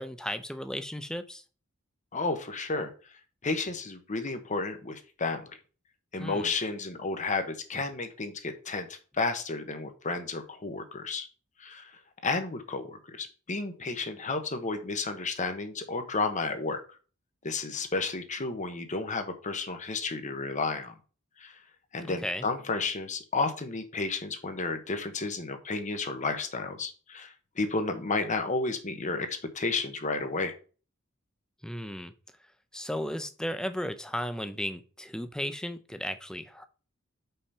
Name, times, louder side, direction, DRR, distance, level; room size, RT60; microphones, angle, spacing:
voice 1, 0.0-1.4 6.2-6.5 22.0-22.5 31.6-32.1 32.7-36.7, equal, 5° left, 9 dB, 0.6 m, -35 dB
voice 2, 2.1-2.9 3.4-5.4 6.1-8.9 9.2-11.3 11.6-11.9 12.2-16.8 17.4-20.9 21.4-21.5 21.9-30.5, left 3 dB, 35° left, 8 dB, 1.1 m, -32 dB
5.6 x 5.1 x 5.5 m, 0.36 s
head